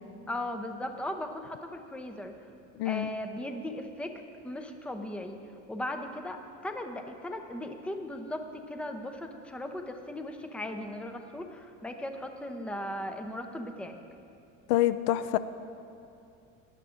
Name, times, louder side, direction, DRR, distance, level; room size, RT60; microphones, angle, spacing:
voice 1, 0.3-2.3 2.8-5.4 5.7-14.0, left 1 dB, 5° left, 5 dB, 0.6 m, -37 dB
voice 2, 2.8-3.1 14.7-15.4, left 14 dB, 65° left, 12 dB, 0.5 m, -26 dB
18.0 x 11.5 x 2.5 m, 2.6 s
supercardioid pair, 115°, 40 cm